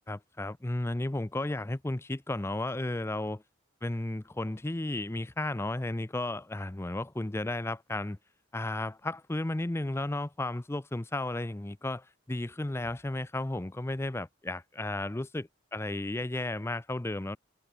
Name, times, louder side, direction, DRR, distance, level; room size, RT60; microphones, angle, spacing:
voice 1, 0.1-3.4 3.8-8.2 8.5-17.4, left 2 dB, 10° left, 0.5 m, -33 dB
head